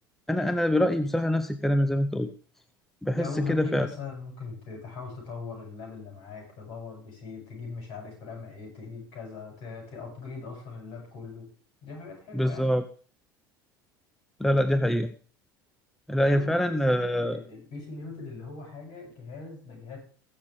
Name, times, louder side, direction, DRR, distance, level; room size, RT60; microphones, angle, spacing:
voice 1, 0.3-2.3 3.0-3.9 12.3-12.8 14.4-15.1 16.1-17.4, equal, 5° left, 11 dB, 0.8 m, -25 dB
voice 2, 3.1-11.4 11.8-12.8 16.3-20.0, left 4 dB, 55° left, 1 dB, 7.9 m, -40 dB
21.0 x 7.2 x 3.6 m, 0.42 s
figure-of-eight pair, 75°, 11 cm